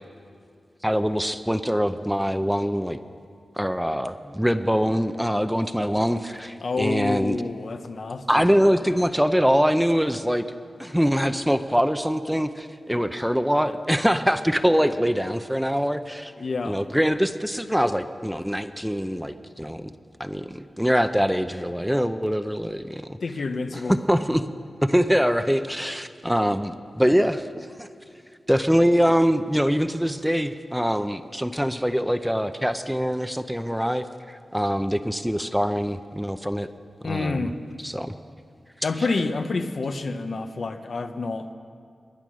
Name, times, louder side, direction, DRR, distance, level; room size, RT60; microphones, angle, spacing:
voice 1, 0.8-3.0 3.6-7.4 8.3-10.5 10.8-16.3 16.6-19.9 20.2-23.2 23.8-24.4 24.8-27.9 28.5-36.7 37.0-37.5 37.8-38.1, equal, ahead, 10 dB, 0.6 m, -23 dB
voice 2, 6.6-8.5 9.0-9.1 16.4-16.8 23.2-23.9 37.0-37.6 38.8-41.5, left 3 dB, 65° left, 8 dB, 0.9 m, -28 dB
21.5 x 10.0 x 6.3 m, 2.3 s
wide cardioid pair, 80°, 0 cm